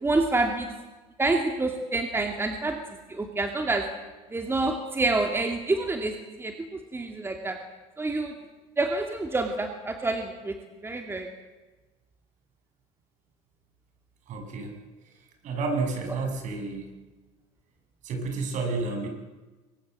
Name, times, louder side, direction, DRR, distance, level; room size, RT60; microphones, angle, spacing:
voice 1, 0.0-0.7 1.2-2.8 3.1-3.8 4.3-7.6 8.0-8.3 8.8-10.6 10.8-11.3, right 2 dB, 15° right, 5 dB, 2.7 m, -27 dB
voice 2, 14.3-14.7 15.4-16.9 18.0-19.1, right 3 dB, 55° right, 5 dB, 6.5 m, -30 dB
24.0 x 20.5 x 7.7 m, 1.2 s
supercardioid pair, 105°, 15 cm